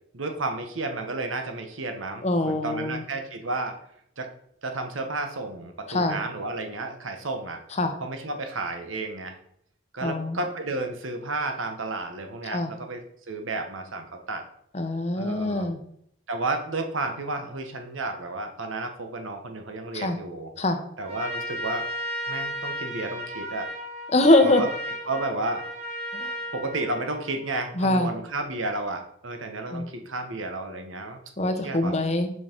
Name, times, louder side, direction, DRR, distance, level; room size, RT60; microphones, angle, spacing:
voice 1, 0.1-3.7 4.2-4.3 4.6-7.6 8.0-9.3 9.9-13.0 13.3-14.4 15.2-15.7 16.3-20.5 21.0-21.9 22.3-23.7 24.4-24.7 25.1-25.6 26.5-31.2 31.6-32.0, right 2 dB, 85° right, 5 dB, 1.2 m, -32 dB
voice 2, 2.2-3.0 5.9-6.2 7.8-7.9 10.0-10.4 12.5-12.7 14.7-15.8 19.9-20.2 20.6-20.8 24.1-24.6 26.1-26.3 27.8-28.1 29.7-29.9 31.4-32.3, left 2 dB, 35° left, 7 dB, 0.8 m, -23 dB
Trumpet, 21.0-27.5, equal, 35° right, 1.8 m, -34 dB
6.3 x 5.5 x 4.5 m, 0.70 s
head